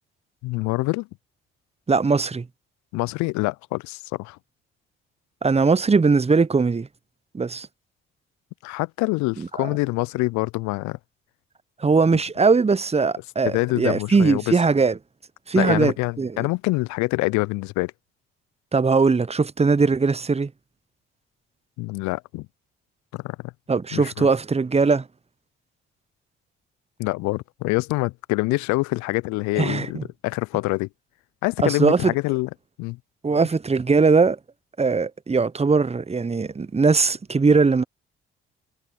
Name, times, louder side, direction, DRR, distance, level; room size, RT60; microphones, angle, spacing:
voice 1, 0.4-1.1 2.9-4.4 8.6-11.0 13.4-14.5 15.5-17.9 21.8-22.5 23.1-23.5 23.9-24.3 27.0-30.9 31.4-32.5 32.8-33.0, left 23 dB, 65° left, 0.6 m, -25 dB
voice 2, 1.9-2.5 5.4-6.9 7.3-7.7 9.4-9.7 11.8-15.0 15.5-16.5 18.7-20.5 23.7-25.1 29.6-30.0 31.6-32.1 33.2-34.4 34.8-37.8, right 4 dB, 20° right, 1.0 m, -20 dB
hypercardioid pair, 45°, 30 cm